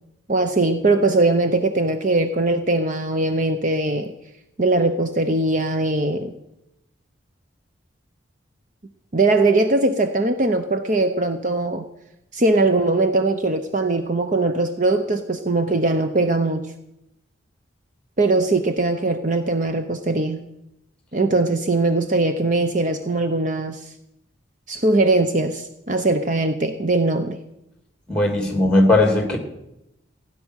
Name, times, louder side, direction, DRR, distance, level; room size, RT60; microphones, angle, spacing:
voice 1, 0.3-4.1 4.6-6.3 9.1-11.9 12.3-16.7 18.2-20.4 21.1-23.9 24.7-27.4, right 2 dB, 40° right, 8 dB, 0.8 m, -20 dB
voice 2, 28.1-29.4, left 2 dB, 5° left, 4 dB, 2.7 m, -17 dB
16.0 x 10.0 x 6.4 m, 0.86 s
head